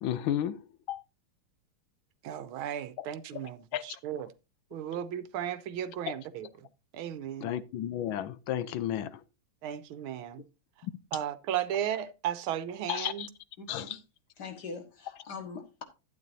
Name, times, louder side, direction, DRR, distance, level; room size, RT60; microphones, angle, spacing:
voice 1, 0.0-0.6 0.9-1.0 3.7-4.0 7.4-9.2 10.8-10.9 12.9-13.3 13.7-14.0, left 11 dB, 75° left, 1.4 m, -32 dB
voice 2, 2.2-4.3 4.7-6.7 6.9-7.5 9.6-10.4 11.1-13.3, right 10 dB, 85° right, 1.6 m, -35 dB
voice 3, 13.6-14.0 14.4-15.8, left 4 dB, 55° left, 2.1 m, -42 dB
12.0 x 8.8 x 2.7 m
omnidirectional pair, 2.3 m